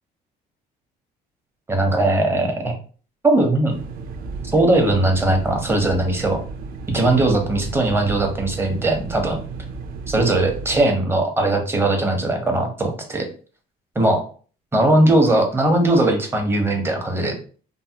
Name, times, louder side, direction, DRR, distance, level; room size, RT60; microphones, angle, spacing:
voice 1, 1.7-2.7 3.2-3.7 4.5-6.4 6.9-9.4 10.1-13.3 14.0-14.2 14.7-17.3, right 2 dB, 15° right, 3 dB, 0.7 m, -19 dB
sound 1, 3.7-10.9, right 4 dB, 60° right, 0.4 m, -33 dB
3.2 x 2.0 x 2.7 m, 0.40 s
cardioid pair, 110°, 17 cm